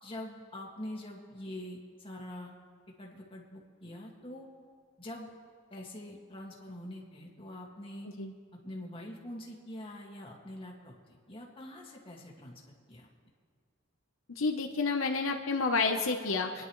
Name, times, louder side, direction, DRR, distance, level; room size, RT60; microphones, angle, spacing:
voice 1, 0.0-2.5 3.0-4.5 5.0-5.3 5.7-8.1 8.5-10.9 11.3-12.6 12.9-13.1, left 1 dB, 25° left, -2 dB, 2.0 m, -44 dB
voice 2, 14.4-16.6, left 4 dB, 70° left, 3 dB, 0.9 m, -30 dB
27.0 x 10.5 x 3.2 m, 2.1 s
head